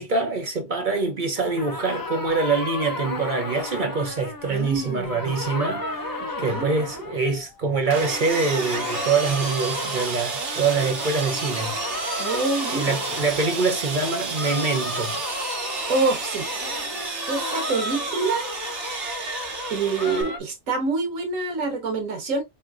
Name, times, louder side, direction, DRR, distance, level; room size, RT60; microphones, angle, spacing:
voice 1, 0.0-12.3 12.7-15.2, right 4 dB, 45° right, 0.8 m, -25 dB
sound 1, 1.4-7.6 7.9-20.4, left 2 dB, 25° left, 0.5 m, -34 dB
voice 2, 4.5-5.4 6.2-6.7 12.2-13.0 15.9-16.5 17.3-18.5 19.7-22.4, right 3 dB, 85° right, 1.7 m, -26 dB
Sawing, 7.9-20.2, right 4 dB, 65° right, 1.4 m, -31 dB
5.3 x 2.7 x 2.4 m
omnidirectional pair, 1.3 m